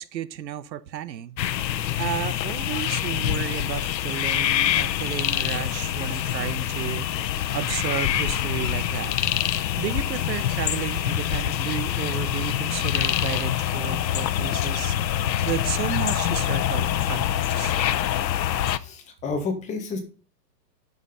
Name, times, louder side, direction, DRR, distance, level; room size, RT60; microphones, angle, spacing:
voice 1, 0.0-1.4 2.0-9.2 9.5-17.8, right 10 dB, 85° right, 1.0 m, -33 dB
sound 1, 1.4-18.8, left 11 dB, 85° left, 0.9 m, -25 dB
voice 2, 18.7-20.0, left 4 dB, 15° left, 1.4 m, -30 dB
10.0 x 6.2 x 5.4 m
hypercardioid pair, 165°, 50 cm